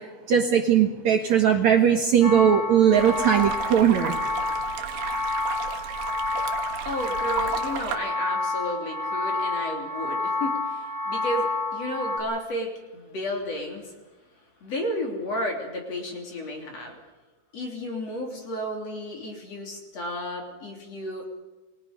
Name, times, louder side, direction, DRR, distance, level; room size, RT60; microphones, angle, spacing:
voice 1, 0.3-4.1, right 8 dB, 60° right, 4 dB, 2.1 m, -19 dB
sound 1, 2.2-12.2, left 3 dB, 65° left, 7.4 m, -29 dB
sound 2, 2.9-8.0, right 9 dB, 85° right, 3.4 m, -34 dB
voice 2, 6.8-13.9 14.6-17.0 17.5-21.2, left 1 dB, 45° left, 1 dB, 4.0 m, -32 dB
29.0 x 20.5 x 5.2 m, 1.2 s
omnidirectional pair, 4.4 m